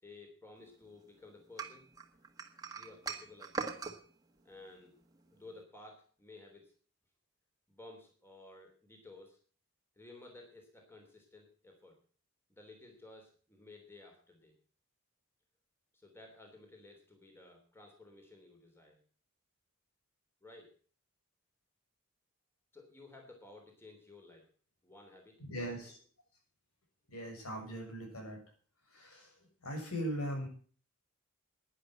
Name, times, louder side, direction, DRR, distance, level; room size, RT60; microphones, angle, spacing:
voice 1, 0.0-1.9 2.8-3.7 4.4-4.9 5.3-6.7 7.7-9.4 10.0-12.0 12.5-14.5 15.9-19.0 20.4-20.7 22.7-24.5 24.8-25.4 25.8-25.9, left 2 dB, 10° left, 2 dB, 3.2 m, -55 dB
Tea cup set down, 1.6-4.0, right 4 dB, 15° right, 1.6 m, -40 dB
voice 2, 25.4-26.0 27.1-28.4 28.9-30.5, equal, 85° left, 1 dB, 6.8 m, -40 dB
11.5 x 10.5 x 7.6 m, 0.43 s
head